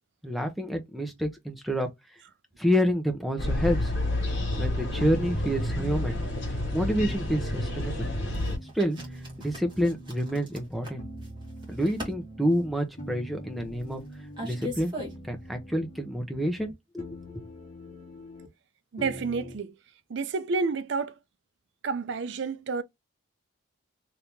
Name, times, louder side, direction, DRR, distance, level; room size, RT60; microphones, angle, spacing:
voice 1, 0.2-1.9 2.6-3.9 4.6-6.2 6.7-8.1 8.7-9.0 9.4-11.0 11.7-14.0 14.4-14.9 15.2-17.4, equal, ahead, 0.7 m, -28 dB
sound 1, 3.4-8.6, left 1 dB, 60° left, 1.4 m, -29 dB
sound 2, 5.0-8.7 9.0-10.7 11.0-14.7 15.0-16.7 17.0-18.5 19.0-19.6, equal, 35° left, 1.2 m, -44 dB
sound 3, 8.3-15.5, left 1 dB, 20° right, 1.3 m, -41 dB
voice 2, 18.9-19.7 20.1-21.1 21.8-22.8, right 4 dB, 55° right, 0.4 m, -29 dB
2.9 x 2.8 x 3.4 m
head